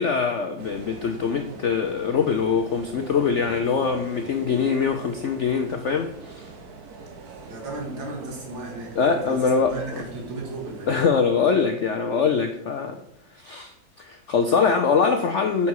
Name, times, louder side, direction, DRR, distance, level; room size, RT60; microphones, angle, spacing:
voice 1, 0.0-6.5 9.0-10.0 10.9-13.0 13.3-15.7, left 5 dB, 75° left, 6 dB, 0.6 m, -23 dB
sound 1, 0.6-11.0, right 4 dB, 60° right, 1.5 m, -42 dB
voice 2, 7.5-10.9, right 2 dB, 85° right, -1 dB, 2.9 m, -35 dB
8.6 x 6.1 x 4.7 m, 0.76 s
omnidirectional pair, 2.0 m